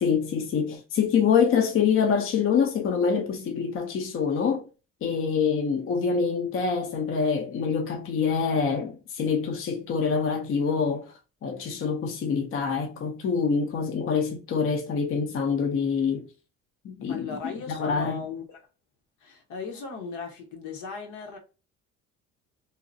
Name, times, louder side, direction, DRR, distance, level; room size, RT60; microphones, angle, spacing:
voice 1, 0.0-4.7 5.0-11.1 11.4-16.3 16.8-17.4 17.7-18.2, left 6 dB, 45° left, 0.6 m, -25 dB
voice 2, 17.1-18.7 19.2-21.4, left 5 dB, 75° left, 1.0 m, -37 dB
2.8 x 2.1 x 2.5 m
cardioid pair, 115°, 30 cm